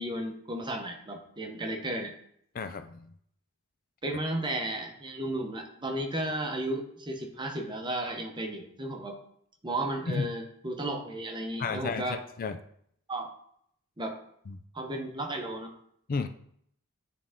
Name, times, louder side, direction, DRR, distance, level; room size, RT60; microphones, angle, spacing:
voice 1, 0.0-2.1 4.0-9.2 9.6-12.2 13.1-13.3 14.0-14.2 14.7-15.7, right 1 dB, 20° right, 3 dB, 0.9 m, -34 dB
voice 2, 2.5-3.0 10.1-10.3 11.6-12.6 14.5-14.6 16.1-16.3, left 4 dB, 45° left, 9 dB, 0.4 m, -32 dB
9.2 x 3.7 x 3.6 m, 0.68 s
head